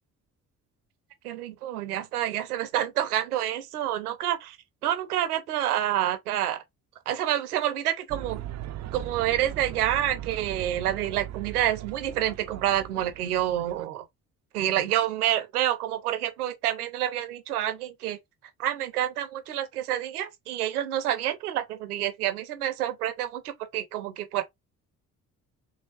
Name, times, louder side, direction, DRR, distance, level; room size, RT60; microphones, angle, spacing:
voice 1, 1.2-4.6 4.8-6.6 7.1-8.4 8.9-14.0 14.5-18.2 18.6-24.4, right 12 dB, 80° right, 0.7 m, -28 dB
sound 1, 8.1-13.9, right 12 dB, 40° right, 0.5 m, -39 dB
4.1 x 3.3 x 2.4 m
figure-of-eight pair, 45°, 44 cm